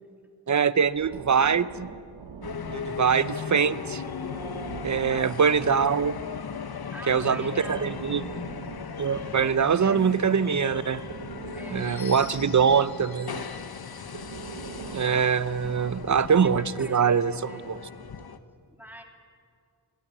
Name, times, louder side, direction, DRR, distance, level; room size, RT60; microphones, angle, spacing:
voice 1, 0.5-1.9 2.7-4.0 4.8-6.2 7.1-8.2 9.0-11.0 11.7-13.4 14.9-17.8, right 6 dB, 40° right, 15 dB, 0.8 m, -23 dB
Breathing, 0.8-3.2 4.0-6.3 7.4-10.3 10.9-13.1 14.0-16.3, right 6 dB, 70° right, 1.1 m, -43 dB
sound 1, 2.4-18.4, left 6 dB, 60° left, 1.1 m, -37 dB
voice 2, 5.1-5.4 6.7-8.0 9.2-10.0 11.5-11.9 15.0-15.4 16.3-17.7 18.7-19.0, right 1 dB, 5° right, 1 dB, 3.1 m, -44 dB
21.0 x 16.0 x 9.7 m, 2.2 s
cardioid pair, 55°, 43 cm